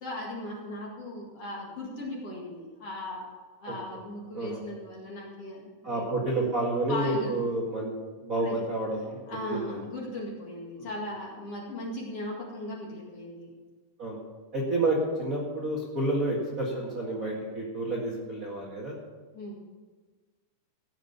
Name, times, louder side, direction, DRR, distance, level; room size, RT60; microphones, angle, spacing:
voice 1, 0.0-3.3 3.6-6.1 6.9-7.3 8.4-8.6 9.3-13.5 19.3-19.6, left 1 dB, 45° left, -3 dB, 2.6 m, -38 dB
voice 2, 5.8-7.9 8.2-9.8 10.8-10.9 14.0-14.2 14.5-19.0, right 2 dB, 35° right, -4 dB, 1.3 m, -29 dB
16.5 x 6.5 x 6.8 m, 1.4 s
omnidirectional pair, 4.6 m